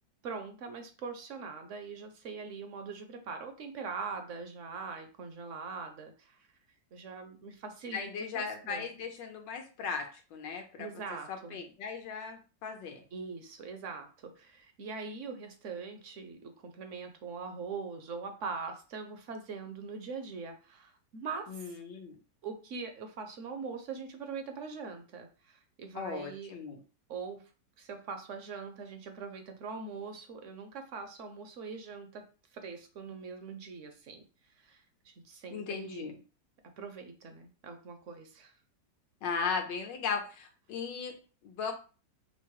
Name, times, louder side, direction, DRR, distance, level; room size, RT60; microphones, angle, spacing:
voice 1, 0.2-6.4 6.9-8.1 8.3-8.9 10.8-11.6 13.1-21.7 22.4-26.5 27.1-27.4 27.8-32.3 32.5-34.2 34.6-36.2 36.8-38.5, right 5 dB, 60° right, 6 dB, 0.8 m, -42 dB
voice 2, 7.9-10.9 11.3-13.0 21.5-22.2 25.9-26.8 35.5-36.2 39.2-41.2 41.4-41.7, left 5 dB, 80° left, 3 dB, 1.6 m, -37 dB
5.5 x 2.0 x 4.6 m, 0.34 s
omnidirectional pair, 1.9 m